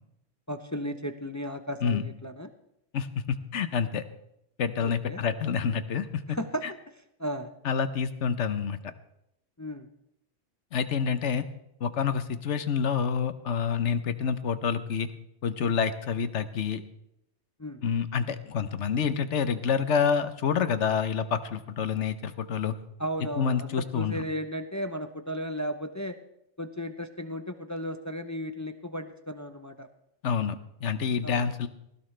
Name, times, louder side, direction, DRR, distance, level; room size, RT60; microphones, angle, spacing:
voice 1, 0.5-2.5 4.8-5.2 6.3-6.8 7.2-7.5 9.6-9.9 17.6-17.8 23.0-26.2 26.6-29.9 31.2-31.5, equal, 20° left, 7 dB, 0.6 m, -35 dB
voice 2, 2.9-4.0 4.6-6.4 7.6-8.8 10.7-11.5 11.8-15.1 15.4-16.8 17.8-22.7 23.4-24.1 30.2-31.7, left 6 dB, 70° left, 11 dB, 1.2 m, -28 dB
19.0 x 16.5 x 3.3 m, 0.79 s
omnidirectional pair, 1.3 m